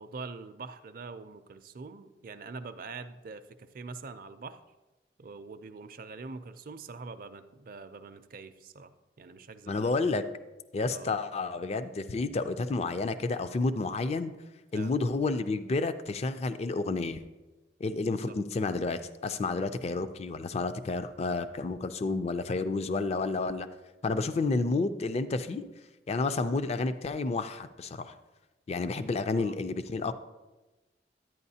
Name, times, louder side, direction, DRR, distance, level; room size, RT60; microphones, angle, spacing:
voice 1, 0.0-4.6 5.2-8.9 9.2-9.9 10.9-11.1 14.7-15.0 18.3-18.4 29.4-29.6, right 4 dB, 50° right, 10 dB, 0.4 m, -44 dB
voice 2, 9.7-10.2 10.7-14.3 14.7-17.2 17.8-23.7 24.0-25.6 26.1-28.2 28.7-30.1, left 3 dB, 35° left, 11 dB, 0.4 m, -30 dB
11.0 x 9.1 x 2.8 m, 1.1 s
head